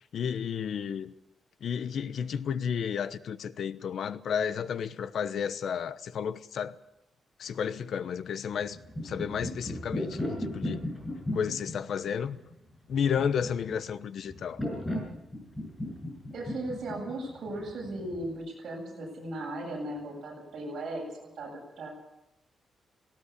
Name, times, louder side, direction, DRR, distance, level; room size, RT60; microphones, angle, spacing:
voice 1, 0.1-1.1 1.6-6.8 7.4-8.8 9.0-10.9 11.3-12.4 12.9-14.6, left 7 dB, 65° left, 1.0 m, -32 dB
sound 1, 8.7-18.3, left 1 dB, 10° left, 6.5 m, -36 dB
voice 2, 16.3-21.9, right 1 dB, 55° right, 7.8 m, -37 dB
18.0 x 17.5 x 8.4 m
wide cardioid pair, 155°, 0 cm